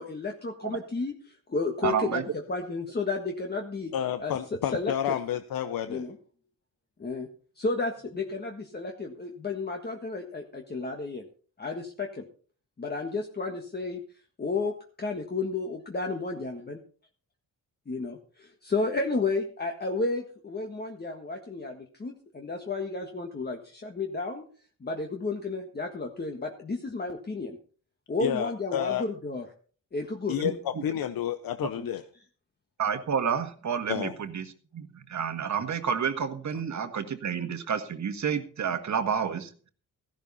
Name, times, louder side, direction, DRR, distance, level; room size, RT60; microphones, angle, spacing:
voice 1, 0.0-2.2 2.5-3.9 4.2-4.3 4.7-4.9 5.9-6.2 7.0-7.3 7.6-11.2 11.6-12.3 12.8-14.0 14.4-16.8 17.9-24.4 24.8-27.6 28.1-29.4 29.9-30.4 31.8-31.9, left 3 dB, 30° left, 1.6 m, -32 dB
voice 2, 1.8-2.2 30.4-30.8 32.8-39.5, right 7 dB, 55° right, 1.6 m, -30 dB
voice 3, 3.9-6.1 28.2-29.0 30.3-32.0 33.9-34.1, left 10 dB, 90° left, 0.9 m, -30 dB
15.5 x 12.0 x 4.2 m
cardioid pair, 105°, 34 cm